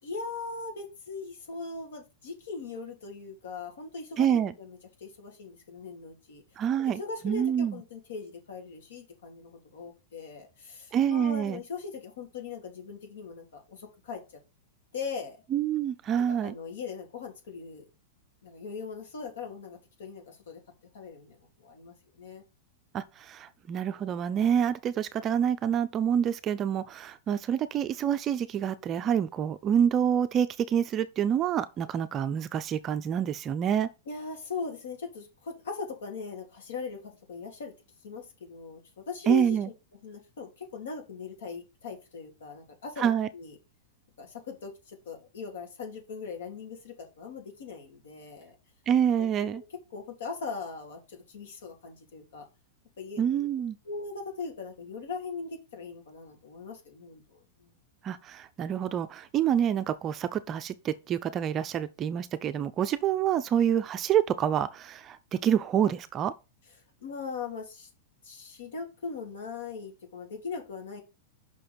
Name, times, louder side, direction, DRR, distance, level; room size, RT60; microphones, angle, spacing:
voice 1, 0.0-6.4 6.8-14.2 14.9-15.4 16.2-17.8 18.4-20.6 20.9-22.4 34.1-37.7 38.0-39.6 40.0-43.5 44.2-48.5 49.2-49.6 49.9-52.4 53.0-53.5 53.8-57.7 67.0-67.9 68.2-71.0, left 5 dB, 90° left, 2.6 m, -40 dB
voice 2, 4.2-4.5 6.6-7.8 10.9-11.6 15.5-16.5 22.9-33.9 39.3-39.7 43.0-43.3 48.9-49.6 53.2-53.8 58.0-66.3, right 9 dB, 20° right, 0.4 m, -27 dB
5.7 x 4.4 x 5.1 m
supercardioid pair, 170°, 0 cm